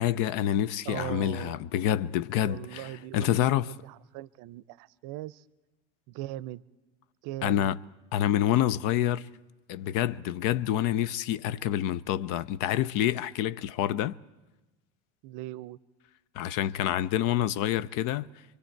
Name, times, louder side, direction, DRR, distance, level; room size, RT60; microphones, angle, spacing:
voice 1, 0.0-3.7 7.4-7.8 8.1-9.3 9.7-14.2 16.4-18.3, left 11 dB, 65° left, 0.6 m, -27 dB
voice 2, 0.9-1.6 2.4-5.4 6.1-6.6 7.2-7.7 15.2-15.8, right 15 dB, 65° right, 0.6 m, -39 dB
25.0 x 24.5 x 4.5 m
supercardioid pair, 105°, 35 cm